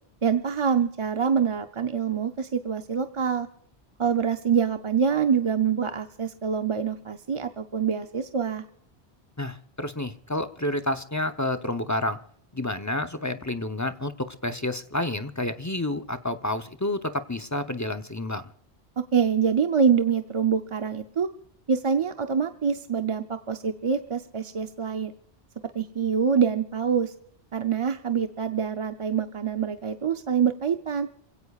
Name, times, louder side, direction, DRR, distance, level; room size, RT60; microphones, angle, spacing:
voice 1, 0.2-3.5 4.0-8.6 19.0-21.3 21.7-25.1 25.7-27.1 27.5-31.1, right 7 dB, 35° right, 7 dB, 0.6 m, -25 dB
voice 2, 9.4-12.2 12.5-18.5, left 1 dB, 20° left, 8 dB, 0.6 m, -29 dB
27.5 x 16.5 x 2.4 m, 0.65 s
omnidirectional pair, 1.1 m